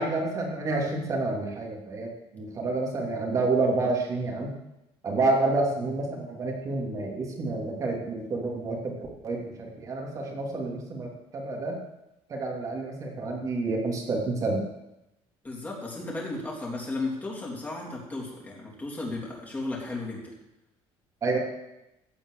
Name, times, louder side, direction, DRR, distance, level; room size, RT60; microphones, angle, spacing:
voice 1, 0.0-4.5 5.0-8.9 9.2-11.8 12.3-14.6 21.2-21.4, right 3 dB, 30° right, 0 dB, 2.9 m, -29 dB
voice 2, 15.4-20.3, left 2 dB, 15° left, -3 dB, 3.1 m, -34 dB
15.5 x 5.2 x 8.2 m, 0.91 s
cardioid pair, 170°, 12 cm